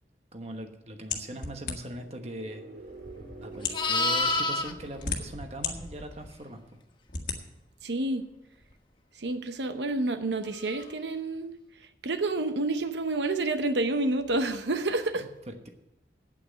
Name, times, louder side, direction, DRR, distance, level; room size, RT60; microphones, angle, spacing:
voice 1, 0.3-2.7 3.4-6.8 15.2-15.7, right 1 dB, 35° right, 5 dB, 1.2 m, -40 dB
sound 1, 1.1-2.1 2.9-3.0 3.5-3.9 4.7-5.7 6.2-6.3 7.1-7.4, left 6 dB, 50° left, 1.6 m, -33 dB
sound 2, 1.8-5.6, right 3 dB, 60° right, 1.9 m, -48 dB
Livestock farm animals working animals, 3.0-6.3 10.6-10.9, left 2 dB, 25° left, 0.9 m, -30 dB
voice 2, 7.8-8.2 9.2-11.5 12.0-15.2, right 2 dB, 85° right, 8 dB, 0.9 m, -29 dB
8.8 x 8.6 x 8.7 m, 0.92 s
head